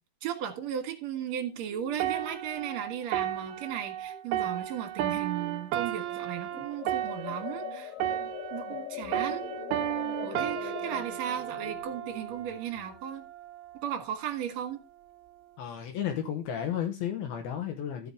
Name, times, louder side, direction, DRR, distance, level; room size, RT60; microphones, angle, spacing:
voice 1, 0.2-7.9 8.5-9.5 10.2-13.3 13.8-14.8, right 9 dB, 55° right, 2.2 m, -36 dB
sound 1, 1.4-1.5 1.7-4.2 4.5-4.8 5.1-5.6 6.1-13.0, left 10 dB, 90° left, 3.4 m, -42 dB
sound 2, 2.0-8.9 9.1-12.7 13.4-13.6, right 12 dB, 80° right, 2.6 m, -33 dB
voice 2, 15.6-18.1, left 9 dB, 70° left, 2.6 m, -33 dB
13.5 x 5.8 x 3.5 m
omnidirectional pair, 5.2 m